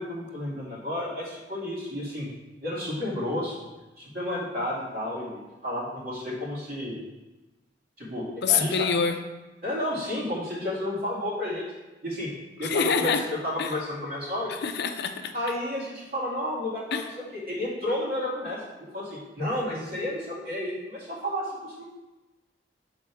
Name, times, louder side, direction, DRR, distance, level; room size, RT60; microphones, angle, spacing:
voice 1, 0.0-2.3 2.6-3.6 4.0-7.0 8.0-8.9 9.6-11.6 12.0-12.3 12.6-14.5 15.3-21.8, left 1 dB, 55° right, -5 dB, 2.3 m, -31 dB
voice 2, 8.4-9.2 12.6-13.2 13.6-13.7 14.6-15.3 16.9-17.0, left 6 dB, 60° left, 7 dB, 0.5 m, -25 dB
7.0 x 4.1 x 4.7 m, 1.1 s
head